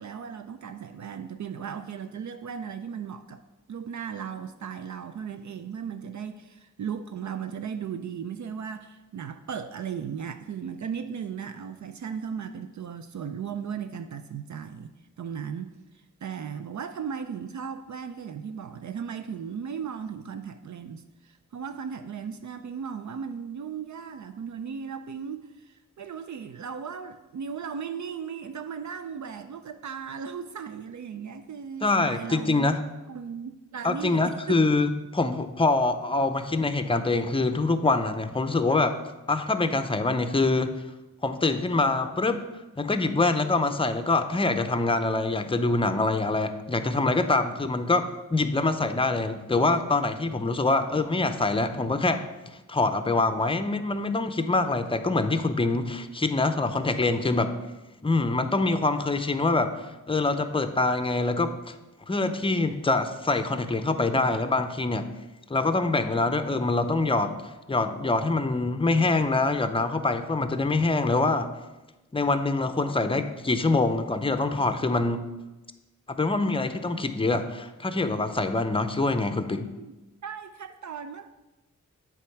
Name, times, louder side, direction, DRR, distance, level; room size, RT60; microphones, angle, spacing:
voice 1, 0.0-3.4 3.7-32.8 33.1-34.6 79.5-79.9 80.2-81.3, right 7 dB, 60° right, 9 dB, 0.5 m, -36 dB
voice 2, 31.8-32.8 33.8-39.0 39.3-40.7 41.2-42.4 42.8-52.2 52.7-57.5 58.0-61.8 62.1-65.1 65.5-67.3 67.7-71.5 72.1-75.2 76.1-79.7, left 3 dB, 15° left, 9 dB, 0.6 m, -25 dB
8.2 x 3.6 x 5.8 m, 1.1 s
cardioid pair, 60°, 32 cm